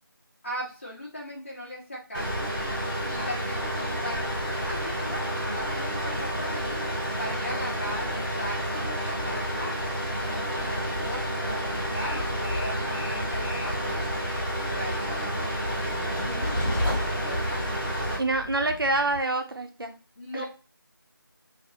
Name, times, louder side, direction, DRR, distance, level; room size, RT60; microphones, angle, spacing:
voice 1, 0.4-2.5 3.0-6.8 7.2-8.6 8.8-9.8 10.2-14.3 14.7-17.6 20.2-20.5, equal, 35° left, -5 dB, 1.1 m, -38 dB
sound 1, 2.1-18.2, equal, ahead, 1.4 m, -30 dB
Train, 10.9-19.2, equal, 15° left, 1.1 m, -35 dB
voice 2, 18.2-20.0 20.3-20.4, right 2 dB, 75° right, 5 dB, 0.6 m, -27 dB
3.4 x 2.0 x 2.6 m, 0.33 s
figure-of-eight pair, 175°, 12 cm